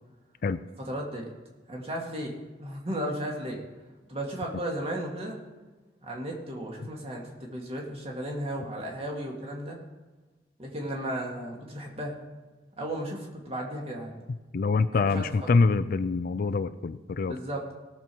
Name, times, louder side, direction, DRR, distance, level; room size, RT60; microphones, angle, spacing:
voice 1, 0.9-1.3 1.7-3.6 4.1-5.4 6.0-9.8 10.6-12.2 12.8-14.2 14.9-15.5 17.2-17.7, right 1 dB, 35° right, -1 dB, 2.3 m, -35 dB
voice 2, 14.5-17.4, left 4 dB, 55° left, 13 dB, 0.4 m, -25 dB
18.0 x 7.1 x 4.6 m, 1.2 s
head